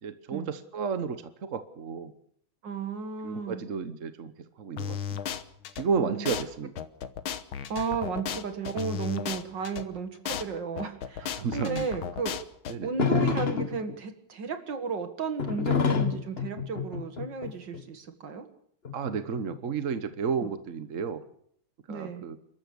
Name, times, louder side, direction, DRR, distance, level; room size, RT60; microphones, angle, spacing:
voice 1, 0.0-2.1 3.2-4.3 4.6-5.0 5.8-6.7 11.4-11.9 12.7-12.9 18.9-21.2 21.9-22.4, right 6 dB, 45° right, 10 dB, 1.2 m, -32 dB
voice 2, 2.6-3.6 6.0-6.3 7.7-12.3 12.8-18.5 20.4-20.5 21.9-22.3, right 5 dB, 65° right, 7 dB, 2.4 m, -34 dB
sound 1, 4.8-5.8 6.3-6.4 6.8-9.8 10.3-10.4 10.8-12.7, left 8 dB, 80° left, 1.9 m, -34 dB
sound 2, 13.0-14.0 15.4-17.8 18.8-19.8, left 5 dB, 35° left, 1.4 m, -27 dB
29.0 x 13.5 x 6.9 m, 0.67 s
omnidirectional pair, 2.2 m